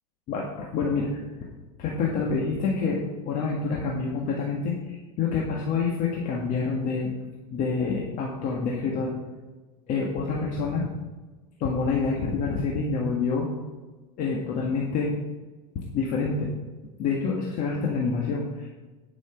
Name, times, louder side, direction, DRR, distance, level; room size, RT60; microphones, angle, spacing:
voice 1, 0.3-1.5 1.8-7.1 7.5-9.1 9.9-10.9 11.6-13.5 14.2-15.2 15.8-16.5 17.0-18.7, left 4 dB, 45° left, -2 dB, 1.9 m, -27 dB
11.0 x 6.3 x 5.9 m, 1.2 s
supercardioid pair, 125°, 20 cm